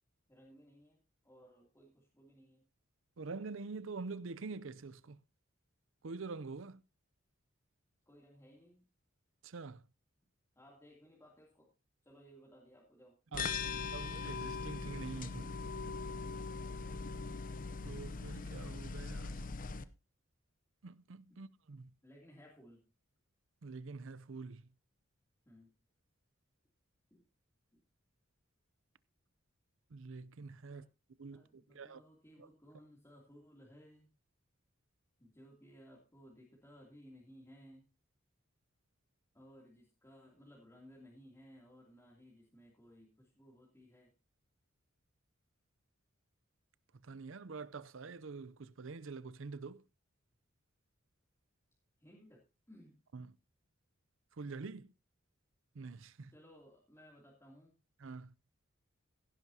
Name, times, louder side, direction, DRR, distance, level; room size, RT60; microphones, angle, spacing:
voice 1, 0.3-2.6 8.1-8.9 10.6-11.7 12.0-13.9 16.5-16.8 21.3-21.4 22.0-22.9 25.4-25.7 27.1-27.2 27.7-27.8 30.7-30.8 31.3-34.1 35.2-37.8 39.3-44.1 52.0-53.0 56.3-57.7, equal, 15° left, 2.9 m, -60 dB
voice 2, 3.2-5.2 6.0-6.8 9.4-9.8 13.3-13.5 13.9-15.6 17.8-19.5 20.8-21.9 23.6-24.7 29.9-30.9 31.2-32.0 32.4-32.5 47.0-49.8 53.1-53.4 54.4-54.9 55.7-56.3 58.0-58.3, right 4 dB, 70° right, 0.6 m, -46 dB
sound 1, 13.3-19.8, left 4 dB, 45° left, 0.7 m, -41 dB
16.5 x 10.5 x 2.8 m
head